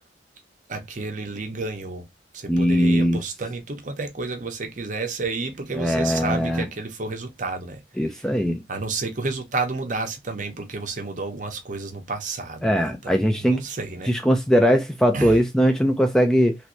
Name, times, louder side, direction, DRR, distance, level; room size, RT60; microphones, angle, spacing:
voice 1, 0.7-2.0 2.3-7.8 8.7-14.1 15.1-15.4, right 3 dB, 40° right, 0.7 m, -31 dB
voice 2, 2.5-3.2 5.7-6.7 8.0-8.6 12.6-13.6 14.0-16.6, equal, 5° left, 0.4 m, -20 dB
3.2 x 3.0 x 2.6 m
head